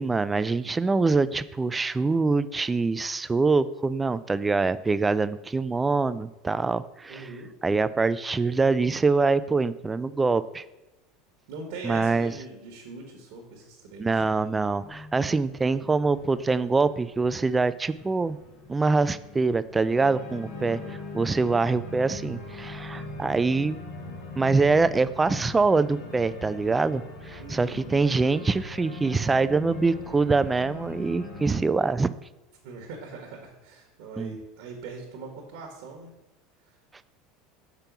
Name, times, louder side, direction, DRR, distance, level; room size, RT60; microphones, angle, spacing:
voice 1, 0.0-7.3 7.6-10.6 11.8-12.3 14.0-18.4 18.7-20.8 21.1-23.8 24.4-32.1 34.2-34.4, right 3 dB, 15° right, 15 dB, 0.3 m, -24 dB
voice 2, 7.1-7.5 11.5-14.4 20.5-21.0 27.4-27.8 32.6-36.1 36.6-36.8, right 3 dB, 70° right, 0 dB, 1.4 m, -41 dB
Organ, 14.8-31.6, left 2 dB, 70° left, 1.5 m, -42 dB
5.3 x 4.4 x 5.9 m, 1.0 s
hypercardioid pair, 95°, 0 cm